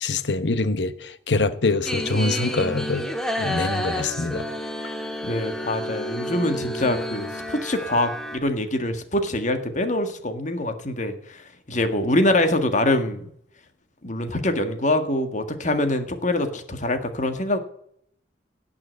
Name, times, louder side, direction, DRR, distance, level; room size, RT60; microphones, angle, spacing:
voice 1, 0.0-3.0 3.4-4.5, left 3 dB, 80° left, 0.9 m, -24 dB
sound 1, 1.9-8.4, equal, 5° left, 1.6 m, -30 dB
voice 2, 5.2-13.2 14.0-17.6, left 1 dB, 45° left, 1.7 m, -24 dB
17.5 x 6.1 x 7.6 m
head